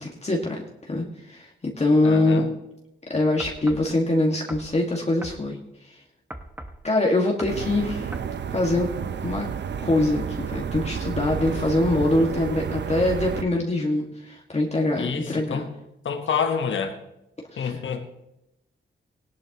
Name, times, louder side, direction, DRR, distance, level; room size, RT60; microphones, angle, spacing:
voice 1, 0.0-2.4 3.1-5.6 5.8-6.0 6.8-8.1 8.5-8.9 9.2-9.5 9.8-15.6 17.5-17.8, left 2 dB, 35° left, -1 dB, 1.9 m, -24 dB
voice 2, 2.0-2.5 15.0-15.7 16.0-17.0 17.6-18.1, left 6 dB, 75° left, 6 dB, 1.3 m, -28 dB
sound 1, 3.4-3.9 4.5-4.7 5.2-5.4 6.3-6.8 7.4-7.6 8.1-8.3, right 1 dB, 10° right, 1.1 m, -38 dB
sound 2, 7.5-13.4, right 7 dB, 65° right, 0.7 m, -31 dB
17.5 x 11.0 x 3.0 m, 0.87 s
cardioid pair, 55°, 20 cm